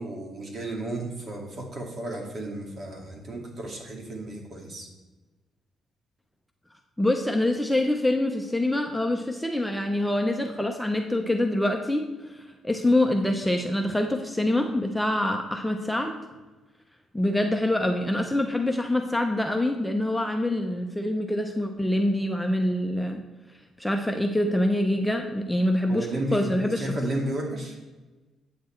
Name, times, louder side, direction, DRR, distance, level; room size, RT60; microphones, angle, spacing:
voice 1, 0.0-4.9 25.9-27.7, right 1 dB, 45° right, 0 dB, 2.2 m, -33 dB
voice 2, 7.0-16.2 17.1-23.2 23.8-27.0, left 1 dB, 5° left, 3 dB, 0.7 m, -25 dB
8.5 x 6.8 x 4.4 m, 1.2 s
cardioid pair, 90°, 0 cm